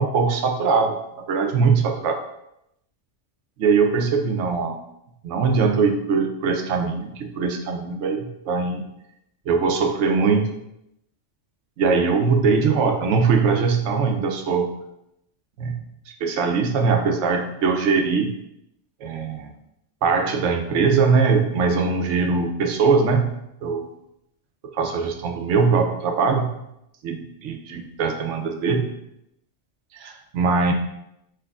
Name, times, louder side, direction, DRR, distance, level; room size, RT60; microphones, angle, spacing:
voice 1, 0.0-2.2 3.6-4.8 5.2-8.8 9.5-10.6 11.8-14.7 15.6-15.8 16.1-18.3 19.0-19.5 20.0-23.3 23.6-23.9 24.7-26.5 27.0-28.9 30.0-30.7, right 5 dB, 75° right, 4 dB, 0.9 m, -21 dB
5.9 x 3.0 x 2.3 m, 0.81 s
omnidirectional pair, 1.3 m